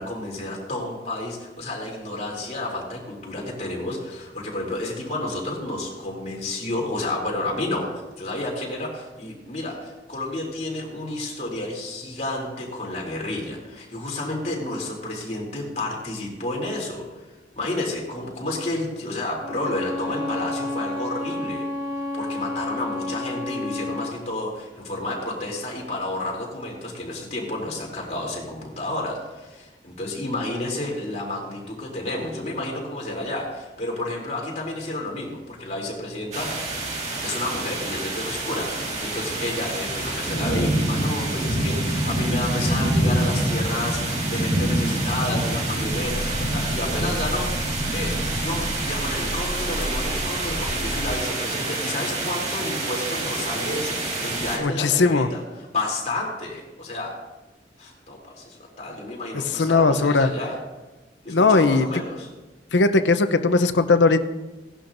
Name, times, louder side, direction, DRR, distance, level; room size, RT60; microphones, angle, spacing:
voice 1, 0.0-17.2 17.5-21.6 22.1-36.5 37.2-57.1 57.8-60.6 61.2-62.3, left 2 dB, 40° left, -2 dB, 3.1 m, -31 dB
Bowed string instrument, 19.4-24.2, left 2 dB, 15° right, 2.0 m, -30 dB
sound 1, 36.3-54.6, right 1 dB, 40° right, 1.9 m, -26 dB
sound 2, 45.8-51.2, equal, 60° right, 2.1 m, -32 dB
voice 2, 54.6-55.3 59.6-60.3 61.3-61.9 62.7-64.2, left 3 dB, 85° left, 10 dB, 0.7 m, -18 dB
17.5 x 11.5 x 2.6 m, 1.1 s
head